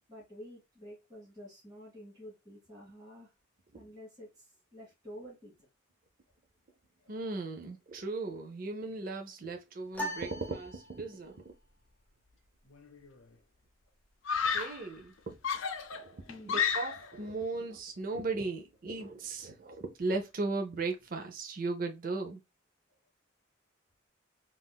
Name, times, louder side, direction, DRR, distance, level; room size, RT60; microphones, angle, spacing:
voice 1, 0.1-3.3 3.7-5.5 7.0-7.1 7.9-8.0 14.3-14.4 16.3-16.7, equal, 20° right, 1.1 m, -50 dB
voice 2, 7.1-11.4 14.5-15.4 16.0-22.4, right 3 dB, 45° right, 0.5 m, -37 dB
sound 1, 9.9-11.4, equal, 10° left, 0.5 m, -40 dB
Screaming, 12.7-13.2 14.3-14.9 15.4-17.2, left 7 dB, 85° left, 0.5 m, -32 dB
3.6 x 2.4 x 2.2 m
head